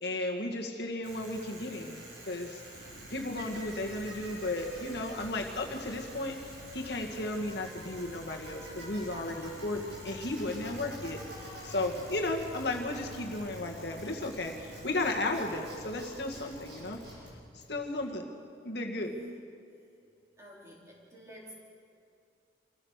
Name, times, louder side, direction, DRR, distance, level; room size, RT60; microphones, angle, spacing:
voice 1, 0.0-2.6 3.1-6.4 6.7-11.2 11.6-17.0 17.5-18.3 18.6-19.1, left 2 dB, 65° left, 2 dB, 1.9 m, -34 dB
Bicycle, 1.0-18.1, right 1 dB, 85° right, 6.6 m, -48 dB
sound 1, 2.7-17.4, left 2 dB, 90° left, 1.0 m, -50 dB
voice 2, 18.9-19.3 20.4-21.5, equal, 15° right, -4 dB, 4.4 m, -49 dB
26.5 x 15.5 x 6.6 m, 2.4 s
head